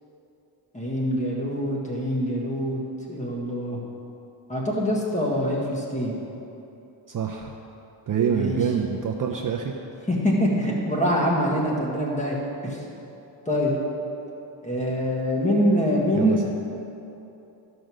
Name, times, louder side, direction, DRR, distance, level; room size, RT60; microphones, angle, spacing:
voice 1, 0.7-2.8 3.1-3.8 4.5-6.1 8.3-8.6 10.1-12.4 12.6-12.8 13.5-13.8 14.6-16.4, equal, 15° left, -3 dB, 1.4 m, -24 dB
voice 2, 7.1-7.6 8.1-9.7 16.1-16.4, right 7 dB, 45° right, 1 dB, 0.5 m, -26 dB
13.0 x 5.2 x 6.1 m, 2.9 s
wide cardioid pair, 175°, 49 cm